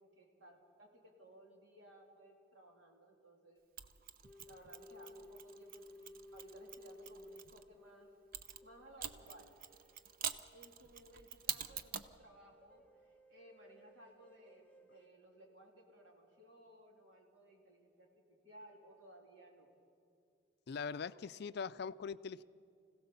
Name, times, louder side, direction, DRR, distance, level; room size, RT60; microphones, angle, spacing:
voice 1, 0.0-3.6 4.4-8.1 8.6-9.6 10.5-19.7, right 1 dB, 75° right, 0 dB, 3.4 m, -60 dB
Mechanisms, 3.8-7.6 8.3-12.2, right 8 dB, 50° right, 0.6 m, -46 dB
sound 1, 4.2-15.1, left 1 dB, 10° left, 0.9 m, -59 dB
voice 2, 20.7-22.4, left 5 dB, 55° left, 15 dB, 0.4 m, -42 dB
25.5 x 16.5 x 7.0 m, 2.5 s
head